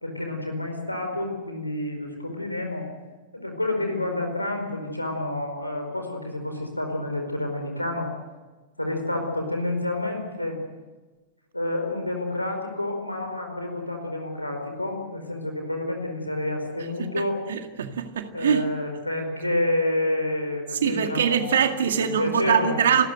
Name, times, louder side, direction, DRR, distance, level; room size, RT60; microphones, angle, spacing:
voice 1, 0.0-2.9 3.3-8.1 8.8-10.6 11.5-17.4 18.3-22.9, left 1 dB, 85° left, 4 dB, 4.7 m, -29 dB
voice 2, 17.5-18.6 20.8-23.1, right 8 dB, 65° right, 7 dB, 2.0 m, -23 dB
29.0 x 13.5 x 8.1 m, 1.2 s
figure-of-eight pair, 90°, 0 cm